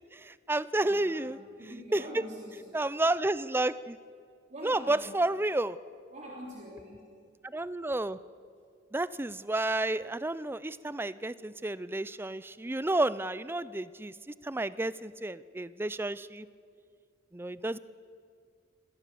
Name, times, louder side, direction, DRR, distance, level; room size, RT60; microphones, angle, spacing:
voice 1, 0.1-1.4 1.9-2.0 2.7-4.0 4.6-5.8 7.4-8.2 8.9-16.5 17.3-17.8, right 2 dB, 10° right, 17 dB, 0.4 m, -31 dB
voice 2, 0.8-2.7 4.5-5.1 6.1-7.0, equal, 40° right, -3 dB, 3.4 m, -45 dB
26.0 x 18.0 x 7.0 m, 2.2 s
head